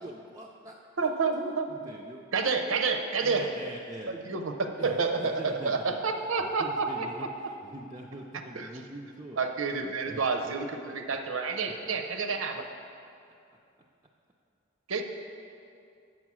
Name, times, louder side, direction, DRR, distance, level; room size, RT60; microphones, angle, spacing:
voice 1, 0.0-1.1 1.7-2.2 3.2-4.1 4.8-6.0 6.4-9.4 10.1-10.2 11.1-11.2 11.9-12.2, right 1 dB, 20° right, -1 dB, 0.4 m, -44 dB
voice 2, 1.0-1.7 2.3-3.5 4.1-7.1 8.5-8.7 9.4-12.7 14.9-15.0, right 4 dB, 80° right, 6 dB, 0.6 m, -29 dB
7.2 x 6.1 x 6.0 m, 2.5 s
head